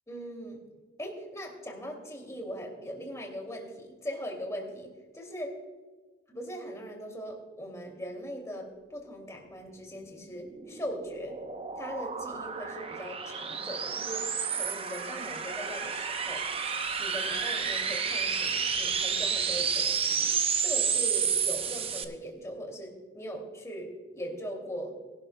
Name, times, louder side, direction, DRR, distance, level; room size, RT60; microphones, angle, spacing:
voice 1, 0.1-0.6 1.0-5.5 6.3-11.4 11.7-14.3 14.5-16.5 17.0-20.3 20.6-25.0, equal, 15° left, 1 dB, 2.5 m, -40 dB
sound 1, 10.2-22.0, right 6 dB, 35° right, 0.7 m, -31 dB
21.0 x 12.0 x 2.2 m, 1.4 s
head